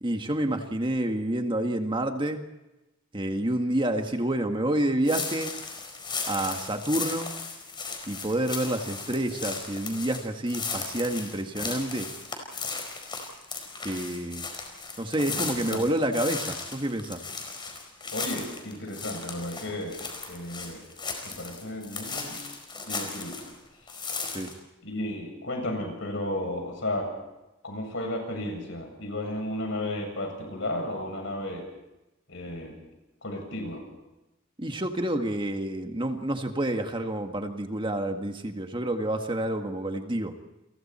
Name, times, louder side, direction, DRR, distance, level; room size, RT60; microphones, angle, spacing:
voice 1, 0.0-2.4 3.1-5.5 6.3-7.4 8.1-12.1 13.8-14.4 15.0-17.2 24.3-24.5 34.6-40.3, right 1 dB, 25° right, 5 dB, 1.8 m, -28 dB
sound 1, 5.0-23.6 23.9-24.5, left 4 dB, 25° left, 4.7 m, -36 dB
voice 2, 15.3-15.8 18.1-20.0 20.3-20.8 21.2-22.4 22.9-23.4 24.8-27.1 27.6-31.6 32.3-32.8 33.2-33.8, left 1 dB, 65° left, 3 dB, 7.7 m, -33 dB
30.0 x 22.5 x 4.4 m, 0.99 s
head